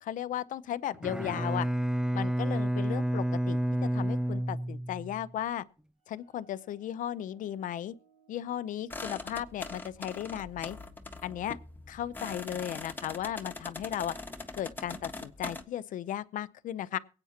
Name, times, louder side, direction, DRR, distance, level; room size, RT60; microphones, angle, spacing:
voice 1, 0.0-1.7 2.1-5.6 6.1-7.9 8.3-10.8 11.2-11.6 11.9-14.1 14.6-17.0, left 11 dB, 85° left, 0.7 m, -35 dB
Bowed string instrument, 0.9-5.3, right 1 dB, 5° right, 0.5 m, -30 dB
sound 1, 6.0-13.4, right 7 dB, 90° right, 4.9 m, -68 dB
sound 2, 8.9-15.6, left 3 dB, 15° left, 1.6 m, -42 dB
23.0 x 8.8 x 2.9 m
cardioid pair, 115°, 13 cm